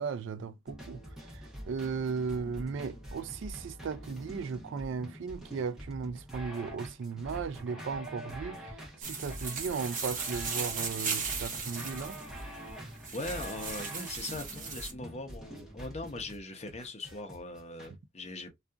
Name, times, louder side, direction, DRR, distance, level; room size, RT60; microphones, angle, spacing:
voice 1, 0.0-12.2, right 5 dB, 70° right, 0.3 m, -36 dB
sound 1, 0.7-17.9, equal, 5° right, 1.0 m, -45 dB
sound 2, 9.0-14.9, right 4 dB, 45° right, 1.0 m, -37 dB
voice 2, 13.1-18.6, left 2 dB, 35° left, 0.7 m, -40 dB
2.7 x 2.4 x 2.3 m
head